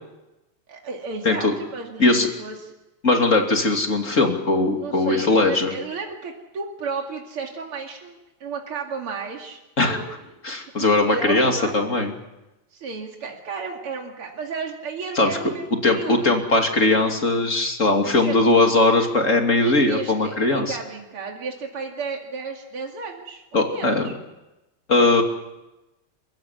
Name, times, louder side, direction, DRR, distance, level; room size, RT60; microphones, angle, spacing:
voice 1, 0.7-2.7 4.8-10.1 10.8-11.8 12.7-16.4 18.0-18.4 19.6-24.1 25.0-25.2, right 4 dB, 80° right, 1 dB, 3.3 m, -33 dB
voice 2, 3.0-5.7 9.8-10.0 10.4-12.1 15.1-15.3 15.8-20.8 23.5-24.0 24.9-25.2, left 2 dB, 35° left, 3 dB, 3.1 m, -19 dB
28.5 x 15.5 x 9.7 m, 0.99 s
omnidirectional pair, 2.4 m